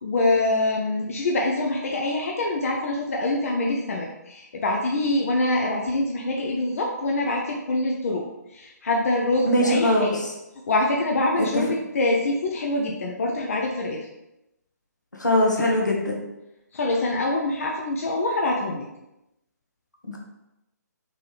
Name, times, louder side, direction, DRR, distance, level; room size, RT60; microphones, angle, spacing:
voice 1, 0.0-8.3 8.5-10.2 10.7-14.1 16.7-18.9, left 2 dB, 50° left, 0 dB, 0.6 m, -25 dB
voice 2, 9.5-10.1 11.4-11.5 15.2-16.1 20.1-20.2, left 1 dB, 85° left, -1 dB, 1.3 m, -21 dB
4.1 x 3.7 x 3.3 m, 0.91 s
figure-of-eight pair, 140°, 9 cm